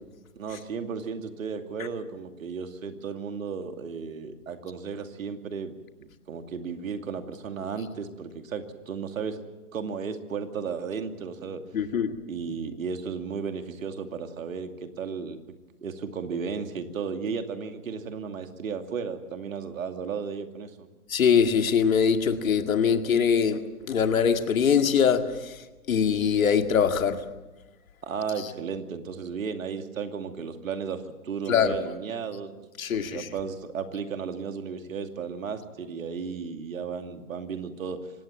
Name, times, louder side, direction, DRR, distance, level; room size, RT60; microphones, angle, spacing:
voice 1, 0.3-5.7 6.0-9.4 9.7-11.6 12.3-15.4 15.8-20.9 28.0-32.5 32.9-38.1, right 6 dB, 65° right, 6 dB, 2.6 m, -34 dB
voice 2, 11.7-12.1 21.1-23.6 23.9-25.6 25.9-27.2 31.5-31.8 32.8-33.3, left 7 dB, 65° left, 7 dB, 2.2 m, -22 dB
25.0 x 18.5 x 7.6 m, 1.1 s
figure-of-eight pair, 130°, 44 cm